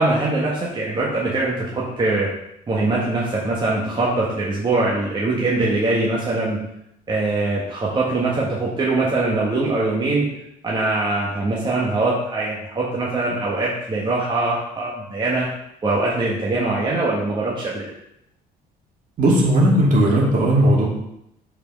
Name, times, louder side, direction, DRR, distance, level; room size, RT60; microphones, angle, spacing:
voice 1, 0.0-2.3 2.7-6.6 7.1-10.3 10.6-15.5 15.8-17.8, right 2 dB, 30° right, -5 dB, 1.4 m, -22 dB
voice 2, 19.2-20.8, right 1 dB, 50° right, -3 dB, 2.4 m, -16 dB
5.5 x 4.8 x 5.3 m, 0.81 s
cardioid pair, 110°, 17 cm